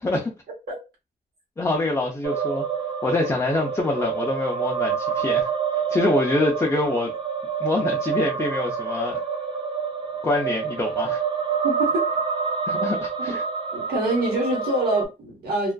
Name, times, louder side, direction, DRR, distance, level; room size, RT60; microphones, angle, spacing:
voice 1, 1.6-2.7 3.0-5.5 5.9-7.1 7.6-9.2 10.2-11.2 12.7-13.4, left 2 dB, 20° left, 0.5 m, -25 dB
sound 1, 2.2-15.0, right 6 dB, 30° right, 0.5 m, -27 dB
voice 2, 11.6-12.0 13.3-13.4 13.7-15.7, right 1 dB, 90° right, 1.1 m, -25 dB
2.4 x 2.3 x 2.2 m
cardioid pair, 100°, 16 cm